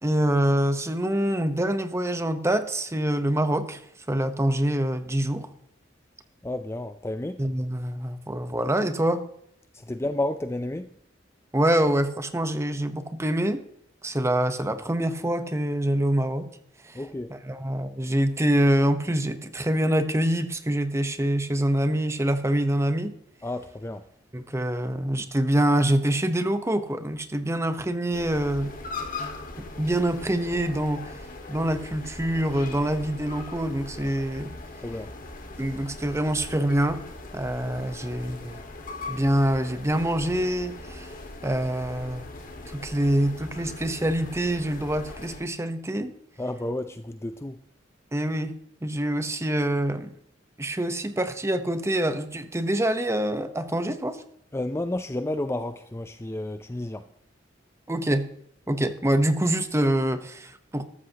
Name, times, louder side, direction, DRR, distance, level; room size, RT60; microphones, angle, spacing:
voice 1, 0.0-3.8 4.1-5.5 7.4-9.2 11.5-13.6 14.0-16.5 16.8-17.0 17.3-23.1 24.3-28.7 29.8-31.1 31.5-34.6 35.6-37.0 37.3-38.6 39.1-41.1 41.4-42.2 42.7-46.1 48.1-48.5 48.8-50.1 50.6-54.2 57.9-58.3 58.7-60.8, right 1 dB, 15° right, 0.9 m, -25 dB
voice 2, 6.4-7.4 9.7-10.9 16.9-17.3 23.4-24.0 34.8-35.1 46.4-47.6 54.5-57.1, left 1 dB, 15° left, 0.4 m, -31 dB
sound 1, 28.1-45.4, left 2 dB, 45° left, 1.8 m, -40 dB
13.5 x 13.0 x 2.9 m
head